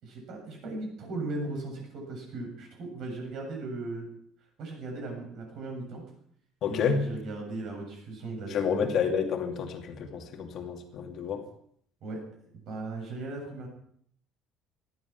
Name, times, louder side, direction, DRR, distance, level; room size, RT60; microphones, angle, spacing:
voice 1, 0.0-4.1 4.6-6.0 6.7-9.1 12.0-12.2 12.5-13.7, right 2 dB, 45° right, 1 dB, 7.5 m, -37 dB
voice 2, 6.6-7.1 8.5-11.4, left 6 dB, 40° left, 4 dB, 2.5 m, -29 dB
18.0 x 13.0 x 6.0 m, 0.66 s
cardioid pair, 170°, 0 cm